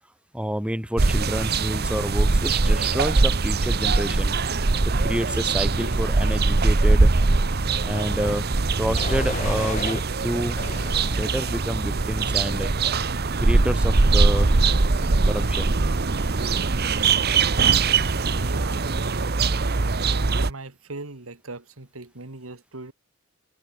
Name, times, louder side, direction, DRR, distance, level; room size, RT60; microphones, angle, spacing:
voice 1, 0.3-4.3 4.8-7.1 7.9-8.5 8.8-10.6 11.1-12.7 13.4-14.6 15.2-15.7, equal, 5° right, 2.5 m, -28 dB
sound 1, 1.0-20.5, right 3 dB, 50° right, 1.0 m, -22 dB
sound 2, 8.0-8.4 8.9-10.0 10.6-11.6 12.2-12.6, left 3 dB, 35° left, 4.0 m, -35 dB
voice 2, 18.4-18.9 20.1-22.9, right 3 dB, 85° right, 2.0 m, -39 dB
head